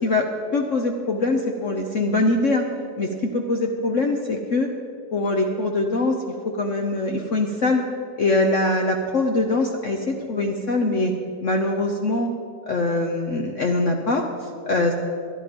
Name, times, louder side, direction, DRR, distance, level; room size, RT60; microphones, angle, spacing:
voice 1, 0.0-2.6 3.0-4.7 5.1-6.2 6.4-7.8 8.2-11.1 11.4-12.3 12.7-14.2 14.7-14.9, left 2 dB, 65° left, 3 dB, 0.7 m, -23 dB
12.0 x 11.0 x 5.2 m, 2.3 s
omnidirectional pair, 2.3 m